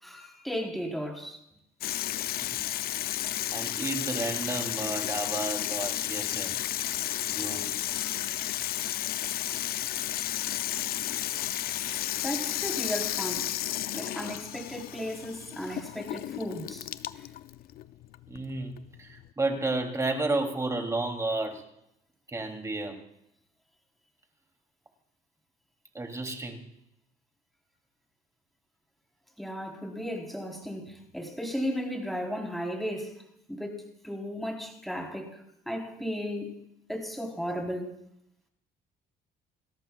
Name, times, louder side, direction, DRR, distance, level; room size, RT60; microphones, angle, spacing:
voice 1, 0.0-1.4 7.9-8.2 12.2-13.5 13.9-16.9 29.4-33.1 33.5-36.6 36.9-37.9, equal, ahead, 3.9 m, -35 dB
Water tap faucet / Sink (filling or washing), 1.8-19.3, left 13 dB, 65° left, 0.5 m, -33 dB
voice 2, 3.5-6.5 7.3-7.7 18.3-21.6 22.3-23.0 25.9-26.6, right 2 dB, 20° right, 2.9 m, -32 dB
29.5 x 13.5 x 2.4 m
cardioid pair, 110°, 17 cm